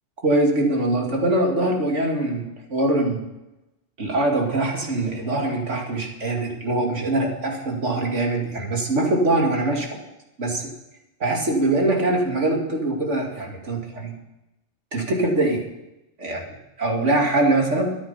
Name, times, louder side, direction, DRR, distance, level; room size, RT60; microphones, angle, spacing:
voice 1, 0.2-3.2 4.0-9.9 10.4-10.7 11.2-14.1 14.9-15.6 16.2-18.0, right 2 dB, 85° right, 1 dB, 2.7 m, -23 dB
13.0 x 10.0 x 5.6 m, 0.93 s
omnidirectional pair, 1.2 m